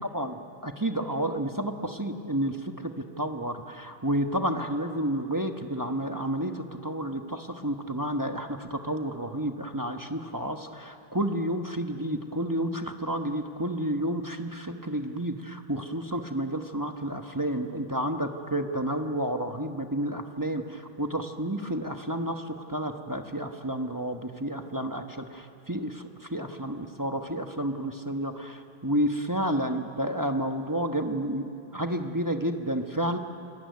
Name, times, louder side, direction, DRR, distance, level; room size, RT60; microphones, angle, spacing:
voice 1, 0.0-33.2, right 1 dB, 15° right, 4 dB, 0.8 m, -30 dB
27.5 x 19.5 x 9.5 m, 2.6 s
omnidirectional pair, 2.0 m